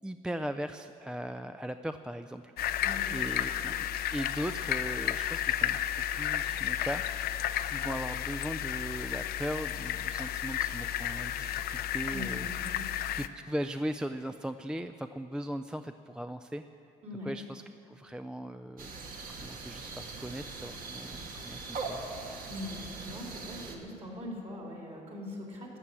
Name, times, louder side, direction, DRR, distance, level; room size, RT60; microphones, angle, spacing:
voice 1, 0.0-2.5 3.1-7.4 7.6-12.5 13.2-16.6 17.3-18.9 19.3-22.0, right 1 dB, 5° right, 9 dB, 0.3 m, -38 dB
sound 1, 2.6-13.3, left 11 dB, 65° left, 0.5 m, -32 dB
voice 2, 2.8-3.2 12.1-12.8 17.0-17.3 22.5-25.8, left 1 dB, 40° right, -2 dB, 3.6 m, -41 dB
sound 2, 18.8-23.8, right 3 dB, 55° right, 1.6 m, -41 dB
13.0 x 7.4 x 9.8 m, 2.7 s
cardioid pair, 110°, 17 cm